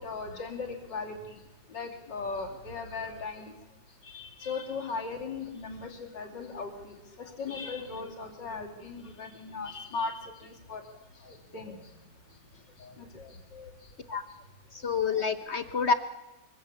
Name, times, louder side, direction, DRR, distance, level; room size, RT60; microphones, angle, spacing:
voice 1, 0.0-1.3 1.7-3.5 4.0-10.8 11.2-11.8 12.8-13.7 15.1-15.3, left 4 dB, 70° left, 1 dB, 3.4 m, -38 dB
voice 2, 14.7-15.9, left 5 dB, 45° left, 10 dB, 1.0 m, -28 dB
24.0 x 16.0 x 7.0 m, 1.0 s
omnidirectional pair, 2.0 m